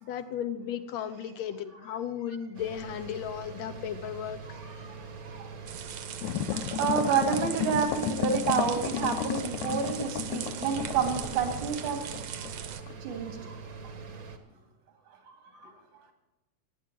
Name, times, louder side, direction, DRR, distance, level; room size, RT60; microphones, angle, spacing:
voice 1, 0.0-4.6, left 9 dB, 70° left, 11 dB, 1.9 m, -35 dB
sound 1, 2.5-14.4, right 4 dB, 45° right, 1.2 m, -43 dB
voice 2, 4.5-5.5 6.5-12.0 12.4-12.5 13.0-13.5 13.8-13.9 15.3-15.7, right 6 dB, 90° right, 4 dB, 3.6 m, -30 dB
sound 2, 5.7-12.8, right 9 dB, 65° right, 1.7 m, -40 dB
sound 3, 6.2-12.5 12.9-13.0, left 10 dB, 90° left, 2.2 m, -33 dB
17.5 x 9.3 x 7.5 m, 0.99 s
omnidirectional pair, 3.4 m